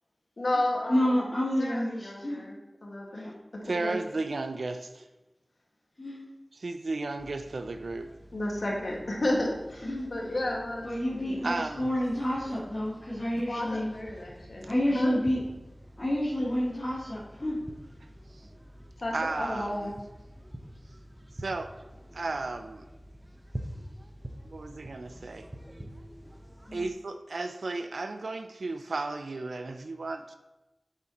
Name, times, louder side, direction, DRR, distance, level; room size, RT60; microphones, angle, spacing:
voice 1, 0.4-1.1 1.6-2.6 2.8-3.2 3.8-3.9 8.3-11.4 13.5-15.1 19.0-19.9, left 1 dB, 75° left, -2 dB, 1.7 m, -32 dB
voice 2, 0.9-2.4 3.1-3.3 6.0-6.2 9.8-10.1 10.8-13.9 14.7-15.4 16.0-17.6 26.7-26.8, equal, 50° left, -10 dB, 2.0 m, -29 dB
voice 3, 3.7-5.0 6.5-8.1 11.4-11.9 19.1-19.9 21.4-21.7 22.1-22.8 24.4-25.5 26.7-30.4, right 3 dB, 90° right, 8 dB, 0.4 m, -34 dB
sound 1, 7.2-26.9, equal, 25° right, 0.9 m, -47 dB
7.9 x 7.4 x 2.9 m, 1.0 s
wide cardioid pair, 40°, 0 cm